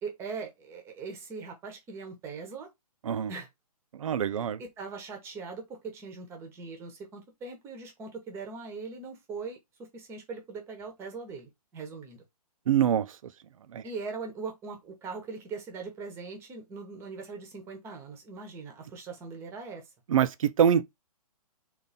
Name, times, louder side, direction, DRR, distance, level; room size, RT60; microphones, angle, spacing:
voice 1, 0.0-2.7 3.3-3.5 4.3-9.6 9.9-12.2 13.8-19.8, right 4 dB, 15° right, 0.9 m, -40 dB
voice 2, 4.0-4.6 12.7-13.1 13.7-13.8 20.1-20.8, right 9 dB, 55° right, 0.6 m, -24 dB
3.9 x 2.7 x 4.0 m
hypercardioid pair, 155°, 20 cm